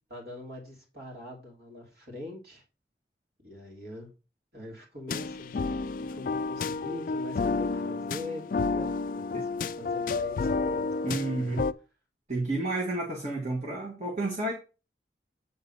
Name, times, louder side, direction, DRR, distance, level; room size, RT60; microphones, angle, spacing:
voice 1, 0.1-2.6 3.4-4.1 4.5-11.5, left 1 dB, 65° right, -1 dB, 2.9 m, -43 dB
sound 1, 5.1-11.7, left 4 dB, 50° left, 0.3 m, -30 dB
voice 2, 11.0-11.6 12.3-14.5, right 2 dB, 40° right, -1 dB, 1.5 m, -31 dB
8.3 x 3.9 x 5.5 m, 0.33 s
head